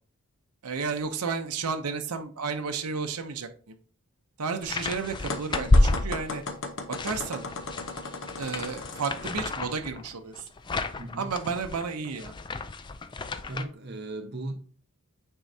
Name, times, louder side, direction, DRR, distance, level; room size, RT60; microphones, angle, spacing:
voice 1, 0.6-3.5 4.4-6.4 6.9-7.4 8.4-10.5 11.1-12.3, right 5 dB, 90° right, 0.7 m, -32 dB
sound 1, 4.6-6.6 6.9-13.6, left 2 dB, 20° left, 0.3 m, -29 dB
sound 2, 5.3-9.5, left 3 dB, 55° left, 0.8 m, -36 dB
voice 2, 13.5-14.5, right 2 dB, 45° right, 0.9 m, -36 dB
9.1 x 4.6 x 2.7 m
head